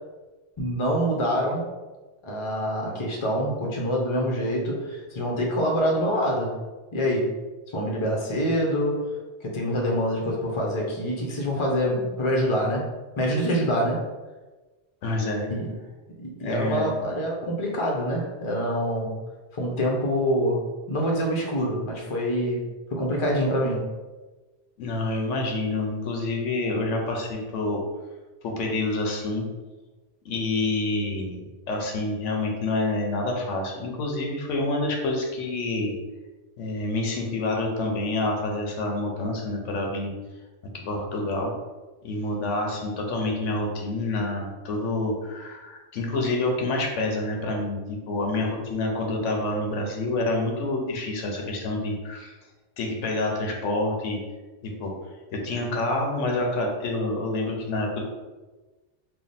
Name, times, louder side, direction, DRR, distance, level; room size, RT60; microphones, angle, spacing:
voice 1, 0.6-1.6 2.2-6.5 6.9-7.3 7.7-9.0 9.4-12.8 13.2-14.0 15.5-15.7 16.2-19.2 19.5-23.8, equal, 30° left, -1 dB, 0.6 m, -25 dB
voice 2, 15.0-15.5 16.4-16.9 24.8-27.8 28.4-29.4 30.2-36.0 36.6-40.1 40.7-41.5 42.0-52.3 52.8-54.2 54.6-54.9 55.3-58.1, left 2 dB, 90° left, 1 dB, 1.1 m, -27 dB
3.4 x 2.3 x 4.0 m, 1.2 s
omnidirectional pair, 1.2 m